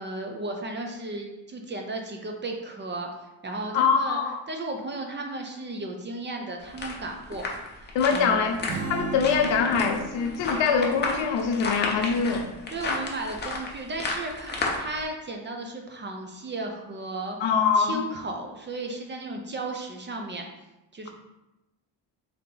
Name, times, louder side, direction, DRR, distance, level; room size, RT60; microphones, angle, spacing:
voice 1, 0.0-3.1 3.4-4.2 4.5-7.4 7.7-8.5 12.7-20.4 20.9-21.1, right 2 dB, 30° right, 2 dB, 0.4 m, -35 dB
voice 2, 3.7-4.4 7.9-8.6 8.9-12.5 17.4-18.0, left 6 dB, 90° left, 5 dB, 0.7 m, -23 dB
sound 1, 6.6-15.0, left 3 dB, 25° left, 0.6 m, -32 dB
Strum, 8.7-12.8, right 3 dB, 55° right, 0.9 m, -38 dB
3.5 x 2.8 x 3.8 m, 0.96 s
cardioid pair, 140°, 44 cm